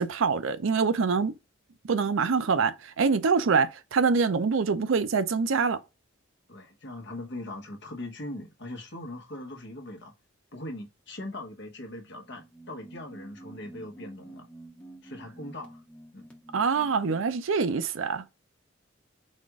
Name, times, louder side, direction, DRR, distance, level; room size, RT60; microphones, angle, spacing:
voice 1, 0.0-1.3 1.9-5.8 16.5-18.2, right 5 dB, 80° right, 0.5 m, -25 dB
voice 2, 6.5-10.1 10.5-14.5 15.0-15.8 16.1-16.3, left 1 dB, 60° left, 1.1 m, -40 dB
sound 1, 12.2-17.4, right 2 dB, 5° left, 1.0 m, -49 dB
4.2 x 2.5 x 4.5 m
head